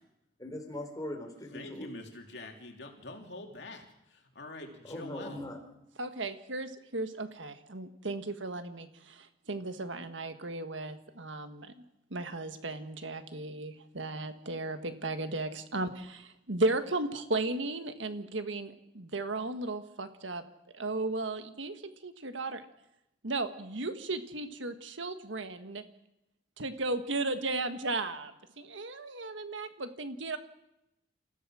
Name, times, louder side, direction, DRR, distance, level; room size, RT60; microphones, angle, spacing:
voice 1, 0.4-1.9 4.9-5.6, left 1 dB, 20° left, 3 dB, 3.8 m, -40 dB
voice 2, 1.5-3.8 4.1-5.4, left 2 dB, 65° left, 3 dB, 3.1 m, -45 dB
voice 3, 6.0-11.7 12.1-20.4 20.7-22.6 23.2-25.8 26.6-30.4, right 2 dB, 85° right, 8 dB, 1.6 m, -35 dB
28.5 x 15.5 x 6.4 m, 0.86 s
head